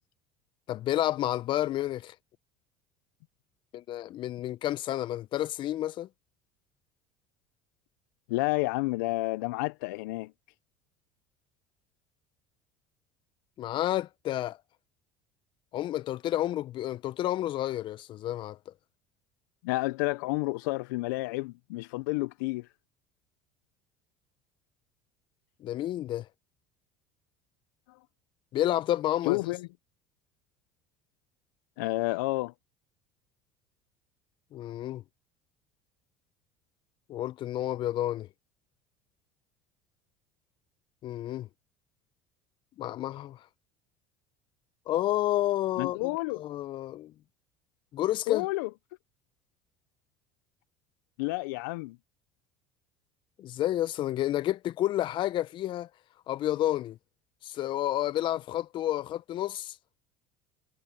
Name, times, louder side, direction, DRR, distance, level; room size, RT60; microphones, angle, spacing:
voice 1, 0.7-2.1 3.7-6.1 13.6-14.6 15.7-18.7 25.6-26.3 28.5-29.4 34.5-35.0 37.1-38.3 41.0-41.5 42.8-43.4 44.9-47.1 47.9-48.5 53.4-55.9 56.3-57.0 57.4-59.7, left 13 dB, 50° left, 1.5 m, -30 dB
voice 2, 8.3-10.3 19.6-22.7 27.9-28.0 29.2-29.7 31.8-32.5 45.8-46.4 48.3-48.7 51.2-52.0, left 23 dB, 70° left, 1.2 m, -30 dB
hypercardioid pair, 70°, 10 cm